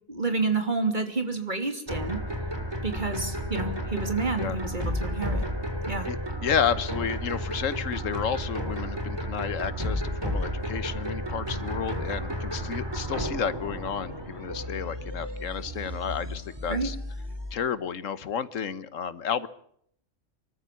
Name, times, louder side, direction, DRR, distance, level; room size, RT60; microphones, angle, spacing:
voice 1, 0.1-2.2 2.8-5.4 5.9-6.1 16.7-16.9, right 3 dB, 40° right, 6 dB, 3.1 m, -29 dB
sound 1, 1.9-17.5, equal, 20° right, 3.3 m, -32 dB
voice 2, 6.0-17.0 17.5-19.5, left 7 dB, 90° left, 15 dB, 1.5 m, -31 dB
25.0 x 13.5 x 8.4 m, 0.68 s
omnidirectional pair, 1.3 m